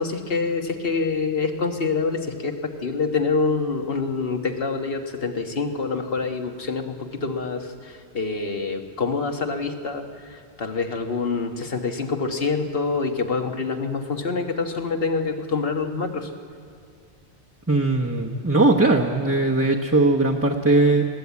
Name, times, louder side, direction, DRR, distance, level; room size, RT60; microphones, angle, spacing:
voice 1, 0.0-16.3, left 4 dB, 55° left, 5 dB, 1.6 m, -26 dB
voice 2, 17.7-21.0, right 2 dB, 15° right, -2 dB, 0.9 m, -19 dB
21.5 x 16.0 x 8.3 m, 2.2 s
omnidirectional pair, 1.2 m